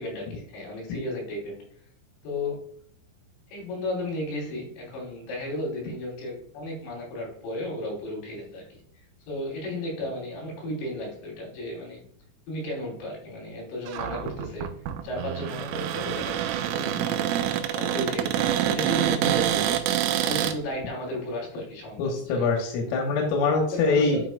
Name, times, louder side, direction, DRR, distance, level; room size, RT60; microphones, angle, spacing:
voice 1, 0.0-1.6 2.2-2.7 3.5-8.8 9.3-12.0 12.5-14.7 15.0-17.3 17.7-19.8 20.2-22.5 23.6-24.3, left 1 dB, 60° left, -4 dB, 5.9 m, -34 dB
Cupboard open or close, 13.9-20.6, right 11 dB, 90° right, 3.3 m, -26 dB
voice 2, 22.0-24.2, left 4 dB, 90° left, 0 dB, 4.0 m, -24 dB
12.0 x 5.9 x 2.4 m, 0.62 s
omnidirectional pair, 5.8 m